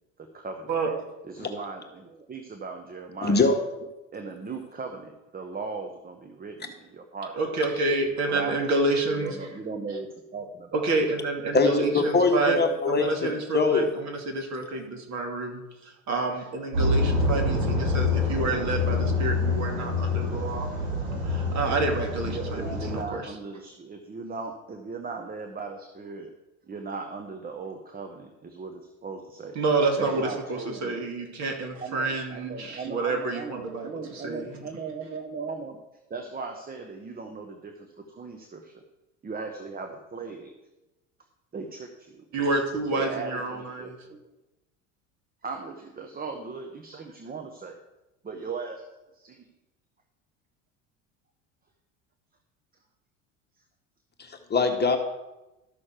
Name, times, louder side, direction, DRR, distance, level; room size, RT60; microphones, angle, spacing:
voice 1, 0.2-0.7 1.2-3.4 4.1-7.6 8.3-8.6 9.2-10.8 16.4-16.5 22.3-26.3 26.7-29.5 30.0-31.0 31.6-35.8 36.1-38.8 39.2-40.5 41.5-42.2 42.9-44.2 45.4-47.8 48.2-48.8 49.1-49.5, right 4 dB, 25° right, 5 dB, 1.2 m, -38 dB
voice 2, 3.2-3.5 11.5-13.8 54.2-55.0, left 4 dB, 25° left, 5 dB, 1.3 m, -23 dB
voice 3, 7.4-9.4 10.7-12.6 12.9-20.7 21.2-23.2 29.5-34.6 42.3-43.9, right 3 dB, 45° right, 3 dB, 2.5 m, -28 dB
sound 1, 16.7-23.0, left 2 dB, 75° right, 3.6 m, -26 dB
13.0 x 6.3 x 4.5 m, 1.0 s
hypercardioid pair, 80°, 39 cm